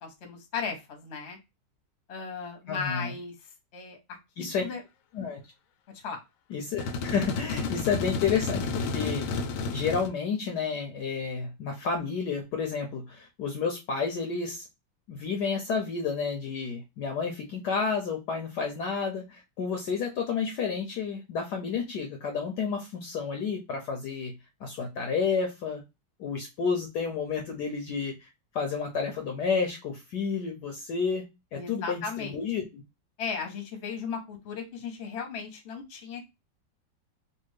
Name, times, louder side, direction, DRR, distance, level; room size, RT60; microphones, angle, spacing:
voice 1, 0.0-1.4 2.1-3.3 3.7-4.0 4.4-4.8 6.0-6.2 31.5-32.4 33.2-36.2, left 5 dB, 45° left, 3 dB, 0.9 m, -36 dB
voice 2, 2.7-3.1 4.4-4.6 5.1-5.4 6.5-9.3 9.7-14.7 15.1-24.3 24.6-25.8 26.2-32.8, left 5 dB, 65° left, 3 dB, 1.1 m, -31 dB
sound 1, 6.8-10.1, left 4 dB, 85° left, 1.4 m, -31 dB
3.3 x 2.5 x 3.2 m, 0.23 s
omnidirectional pair, 2.2 m